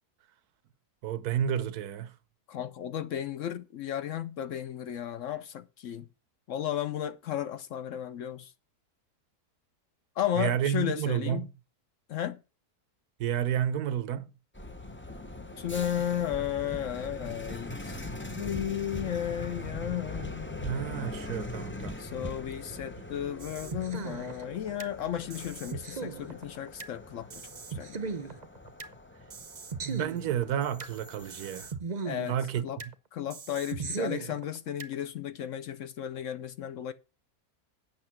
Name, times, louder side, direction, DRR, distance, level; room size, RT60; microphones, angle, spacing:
voice 1, 1.0-2.1 10.4-11.5 13.2-14.3 20.6-22.0 29.8-31.7 32.3-32.6, right 9 dB, 80° right, 1.3 m, -30 dB
voice 2, 2.5-6.1 6.5-8.5 10.2-11.5 12.1-12.4 15.6-18.0 18.3-20.6 22.0-28.3 32.0-32.4 32.6-32.8 33.1-36.9, left 10 dB, 65° left, 0.9 m, -34 dB
sound 1, 14.5-31.7, left 2 dB, 15° left, 0.4 m, -41 dB
sound 2, 23.4-24.9 25.3-26.9 27.3-28.9 29.3-30.9 31.3-32.9 33.3-34.9, right 5 dB, 40° right, 0.7 m, -38 dB
8.8 x 6.7 x 5.9 m
omnidirectional pair, 1.6 m